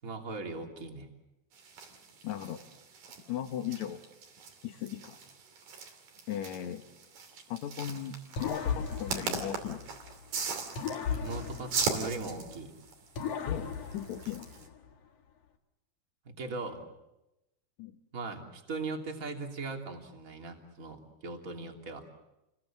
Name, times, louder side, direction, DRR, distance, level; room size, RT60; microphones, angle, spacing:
voice 1, 0.0-1.1 11.2-12.7 16.2-16.8 18.1-22.0, right 3 dB, 25° right, 2 dB, 2.9 m, -39 dB
sound 1, 1.5-14.7, right 5 dB, 60° right, 4.3 m, -40 dB
voice 2, 2.2-2.6 3.3-4.0 4.6-5.2 6.3-6.8 7.5-9.8 13.4-13.7 13.9-14.5 17.8-17.9, left 10 dB, 70° left, 8 dB, 1.8 m, -37 dB
sound 2, 8.4-10.2 10.8-12.6 13.1-14.9, left 6 dB, 50° left, 2.3 m, -37 dB
29.5 x 21.5 x 7.5 m, 0.94 s
omnidirectional pair, 4.4 m